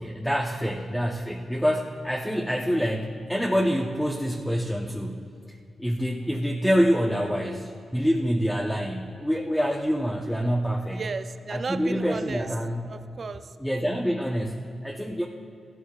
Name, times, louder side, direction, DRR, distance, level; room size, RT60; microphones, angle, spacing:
voice 1, 0.0-5.3 5.8-11.0 11.5-12.9 13.6-15.3, equal, 5° left, -1 dB, 0.8 m, -26 dB
voice 2, 10.9-12.5 12.9-13.6, right 4 dB, 50° right, 10 dB, 0.5 m, -35 dB
15.5 x 13.0 x 2.4 m, 2.5 s
cardioid pair, 75°, 0 cm